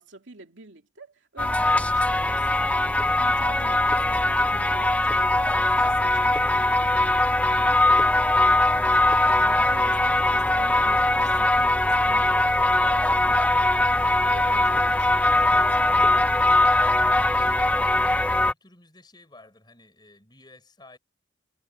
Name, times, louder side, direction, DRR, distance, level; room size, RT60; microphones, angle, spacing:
voice 1, 0.0-2.8 3.2-7.8 8.5-14.0 14.2-16.7, right 3 dB, 75° right, 2.5 m, -46 dB
sound 1, 1.4-18.5, left 2 dB, 5° left, 0.4 m, -21 dB
voice 2, 17.4-21.0, left 2 dB, 25° left, 4.3 m, -53 dB
head